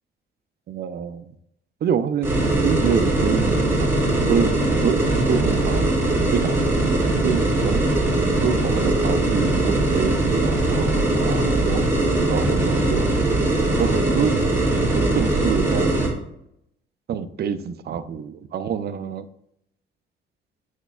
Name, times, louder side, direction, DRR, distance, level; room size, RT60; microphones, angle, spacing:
voice 1, 0.7-1.3 1.8-2.3 2.6-3.9 4.3-5.0 5.3-5.9 6.3-7.8 8.4-11.8 12.3-13.1 13.8-14.4 14.9-16.1 17.1-19.3, right 7 dB, 55° right, 11 dB, 0.5 m, -27 dB
sound 1, 2.2-16.1, right 2 dB, 15° right, 2.9 m, -20 dB
9.0 x 6.4 x 2.4 m, 0.75 s
cardioid pair, 90°, 20 cm